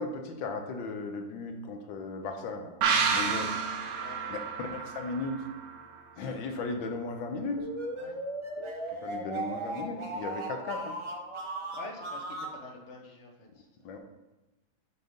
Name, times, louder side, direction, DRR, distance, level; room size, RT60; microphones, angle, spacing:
voice 1, 0.0-2.7 3.1-3.6 4.3-5.4 6.2-7.6 8.9-11.0 13.8-14.0, left 3 dB, 80° left, 4 dB, 1.5 m, -36 dB
sound 1, 2.8-6.3 6.6-6.7, right 6 dB, 65° right, 0.7 m, -30 dB
sound 2, 7.6-12.6, right 1 dB, 30° right, 0.5 m, -37 dB
voice 2, 11.4-13.7, left 2 dB, 50° left, 1 dB, 1.0 m, -47 dB
6.7 x 3.8 x 5.3 m, 1.1 s
omnidirectional pair, 2.1 m